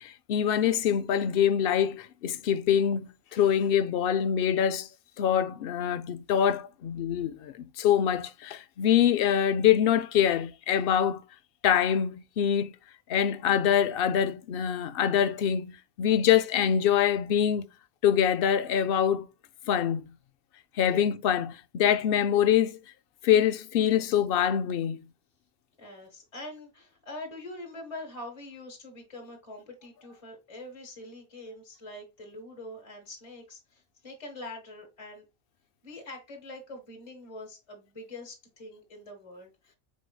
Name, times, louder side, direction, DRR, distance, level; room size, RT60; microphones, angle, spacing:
voice 1, 0.0-4.9 5.2-11.2 11.6-12.7 13.1-17.7 18.0-19.3 19.7-20.1 20.8-22.8 23.2-25.1, left 9 dB, 60° left, 0.6 m, -25 dB
voice 2, 25.8-35.2 35.8-39.8, left 2 dB, 30° left, 1.3 m, -44 dB
5.3 x 4.6 x 2.2 m
omnidirectional pair, 1.2 m